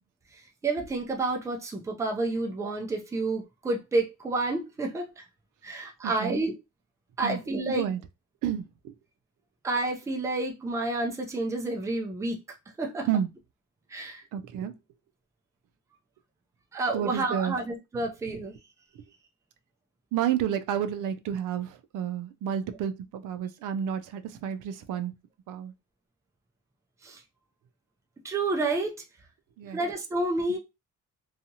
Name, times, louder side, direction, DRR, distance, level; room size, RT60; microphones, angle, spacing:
voice 1, 0.6-5.1 5.6-6.5 7.2-7.8 9.6-12.4 12.8-13.1 13.9-14.2 16.7-18.5 27.0-27.2 28.2-28.9 29.7-30.6, right 2 dB, 10° right, 0.4 m, -29 dB
voice 2, 6.0-6.4 7.2-7.4 7.7-8.0 8.4-8.9 13.0-13.3 14.3-14.7 16.9-17.6 20.1-25.1 25.5-25.7 29.6-29.8 30.5-30.6, right 9 dB, 85° right, 0.5 m, -30 dB
2.7 x 2.4 x 2.7 m
cardioid pair, 170°, 31 cm